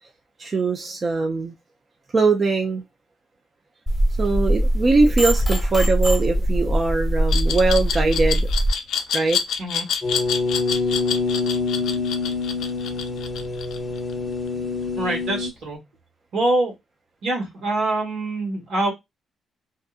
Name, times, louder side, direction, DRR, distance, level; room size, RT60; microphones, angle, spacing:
voice 1, 0.4-1.5 2.1-2.8 4.2-8.5 9.1-9.4, right 3 dB, 30° right, 0.3 m, -21 dB
sound 1, 3.9-8.7, equal, 5° right, 1.0 m, -21 dB
Glass, 7.3-14.1, left 7 dB, 75° left, 0.4 m, -27 dB
sound 2, 10.0-15.5, left 4 dB, 15° left, 0.6 m, -26 dB
voice 2, 15.0-15.8 16.3-16.7 17.2-18.9, right 2 dB, 75° right, 1.4 m, -24 dB
2.7 x 2.4 x 2.3 m
cardioid pair, 155°, 0 cm